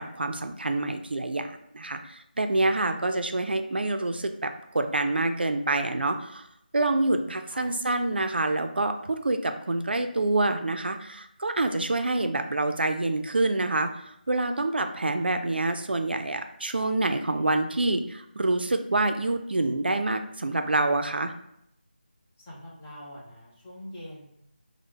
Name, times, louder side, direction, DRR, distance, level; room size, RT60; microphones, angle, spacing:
voice 1, 0.0-6.4 6.7-21.3, right 2 dB, 85° right, 7 dB, 0.3 m, -27 dB
voice 2, 6.9-7.7 22.4-24.2, left 1 dB, 15° left, -6 dB, 0.5 m, -44 dB
3.0 x 2.0 x 3.3 m, 0.78 s
figure-of-eight pair, 165°, 5 cm